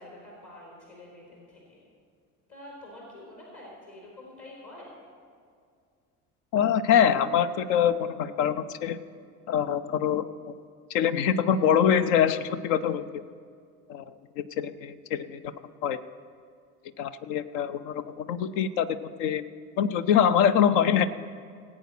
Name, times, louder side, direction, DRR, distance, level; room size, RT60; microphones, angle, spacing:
voice 1, 0.0-1.8 2.5-4.9, left 1 dB, 40° left, -4 dB, 3.8 m, -47 dB
voice 2, 6.5-9.0 9.5-10.3 10.9-13.0 13.9-14.0 14.4-15.5 15.8-16.0 17.0-19.4 19.8-21.1, left 8 dB, 55° left, 14 dB, 0.7 m, -24 dB
18.5 x 8.5 x 4.5 m, 2.2 s
figure-of-eight pair, 60°, 45 cm